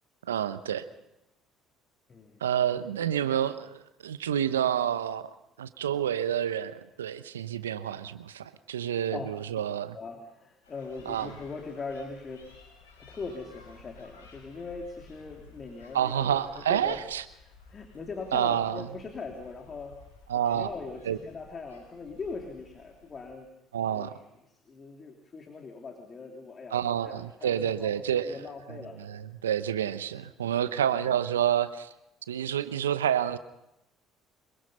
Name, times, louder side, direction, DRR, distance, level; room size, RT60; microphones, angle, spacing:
voice 1, 0.3-0.8 2.4-5.3 5.6-10.0 11.1-11.3 15.9-17.2 18.3-18.8 20.3-20.7 21.1-21.2 23.7-24.1 26.7-28.3 29.0-31.9 32.3-33.4, right 10 dB, 85° right, 13 dB, 0.8 m, -28 dB
voice 2, 2.1-2.4 2.8-3.4 9.1-9.4 9.9-12.4 13.0-17.0 17.4-20.0 20.4-23.5 23.9-29.0 30.6-31.1, left 4 dB, 35° left, 3 dB, 3.1 m, -41 dB
sound 1, 10.6-23.2, left 4 dB, 85° left, 5.5 m, -54 dB
26.0 x 22.5 x 5.5 m, 0.89 s
hypercardioid pair, 60°, 0 cm